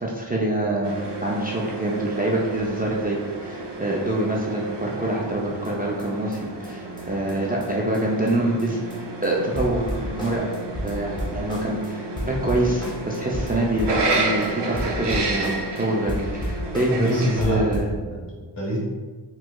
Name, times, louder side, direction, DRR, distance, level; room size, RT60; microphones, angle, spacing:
voice 1, 0.0-8.8 9.2-10.5 10.8-17.9, right 1 dB, 20° right, -4 dB, 0.4 m, -25 dB
sound 1, 0.8-17.4, right 2 dB, 65° right, 0.6 m, -31 dB
sound 2, 5.6-5.7 6.0-6.1 6.3-6.4 6.6-6.7 7.0-7.1 7.3-7.4 7.6-7.7 7.9-8.0 8.3-8.4 8.6-9.0 9.2-9.3 9.5-11.9 12.2-14.5 14.8-15.8 16.1-17.1 17.4-18.0, equal, 10° left, 0.8 m, -32 dB
voice 2, 16.9-18.8, equal, 65° left, -6 dB, 1.3 m, -27 dB
4.4 x 2.3 x 2.2 m, 1.4 s
wide cardioid pair, 80°, 44 cm